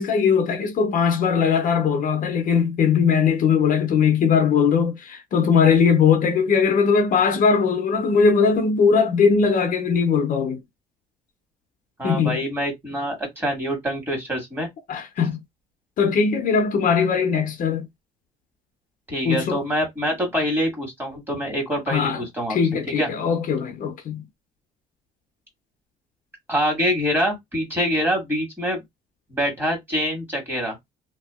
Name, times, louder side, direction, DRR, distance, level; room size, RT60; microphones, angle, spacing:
voice 1, 0.0-10.6 12.0-12.4 14.9-15.4 16.0-17.9 19.2-19.6 21.9-22.2 22.5-24.2, left 6 dB, 55° left, 0.7 m, -20 dB
voice 2, 12.0-14.7 19.1-22.6 22.9-23.1 26.5-28.8 29.3-30.8, equal, 10° right, 1.7 m, -25 dB
2.8 x 2.3 x 2.3 m
cardioid pair, 110°, 17 cm